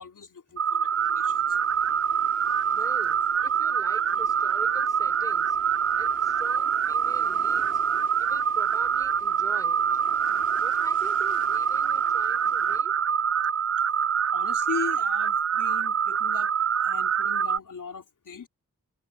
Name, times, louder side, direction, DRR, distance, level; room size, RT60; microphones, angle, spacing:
voice 1, 0.0-1.6 4.1-4.2 14.3-16.5 16.8-18.5, left 5 dB, 85° left, 3.1 m, -38 dB
sound 1, 0.6-17.6, right 7 dB, 50° right, 0.4 m, -25 dB
sound 2, 0.9-12.8, left 2 dB, 25° left, 3.4 m, -49 dB
voice 2, 2.7-7.8 8.2-10.0 10.6-13.0, left 1 dB, 10° left, 4.9 m, -45 dB
wide cardioid pair, 100°, 31 cm